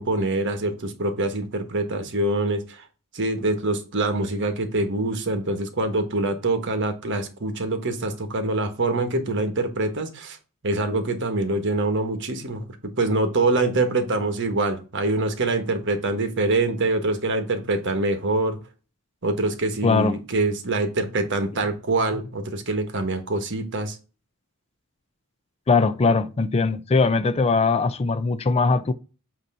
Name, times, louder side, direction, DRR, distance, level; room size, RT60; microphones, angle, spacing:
voice 1, 0.0-2.8 3.1-10.4 10.6-18.6 19.2-24.0, right 2 dB, 60° right, 1.3 m, -25 dB
voice 2, 19.8-20.2 25.7-28.9, left 4 dB, 30° left, 0.4 m, -20 dB
8.1 x 2.8 x 5.4 m
head